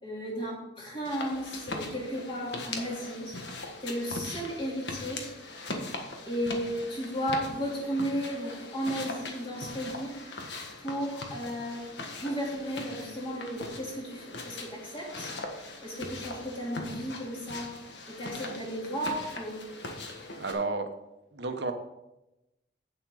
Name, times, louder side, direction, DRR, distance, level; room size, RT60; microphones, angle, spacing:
voice 1, 0.0-3.4 3.8-5.3 6.2-10.2 10.8-11.9 12.2-15.3 15.8-17.7 18.1-19.6, equal, 25° left, -3 dB, 2.7 m, -34 dB
sound 1, 1.0-20.5, left 2 dB, 70° left, 1.6 m, -40 dB
voice 2, 20.4-20.9 21.3-21.7, right 3 dB, 70° right, 6 dB, 1.0 m, -31 dB
8.7 x 7.7 x 4.8 m, 0.95 s
head